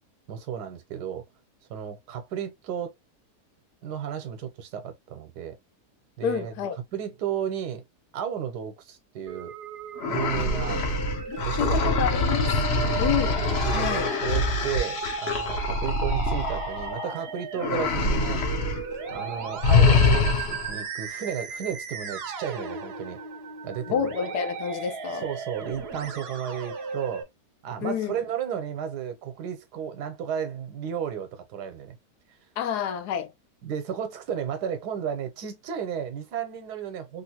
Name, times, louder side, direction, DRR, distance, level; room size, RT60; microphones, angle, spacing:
voice 1, 0.3-1.2 1.7-2.9 3.8-5.6 6.2-6.5 6.9-7.8 8.1-9.5 10.0-10.8 11.4-11.8 12.7-13.1 13.6-18.4 19.1-23.2 23.6-24.1 25.2-27.3 27.6-32.0 33.6-37.2, right 8 dB, 80° right, 1.3 m, -33 dB
voice 2, 6.2-6.8 11.3-12.6 13.0-13.3 13.7-14.1 23.9-25.2 27.8-28.1 32.6-33.3, left 8 dB, 80° left, 1.2 m, -29 dB
Musical instrument, 9.3-27.2, right 5 dB, 55° right, 0.7 m, -36 dB
sound 1, 10.0-17.2 17.6-18.8 19.1-19.3 19.6-20.7, left 3 dB, 55° left, 0.8 m, -24 dB
3.4 x 2.5 x 2.8 m
omnidirectional pair, 1.7 m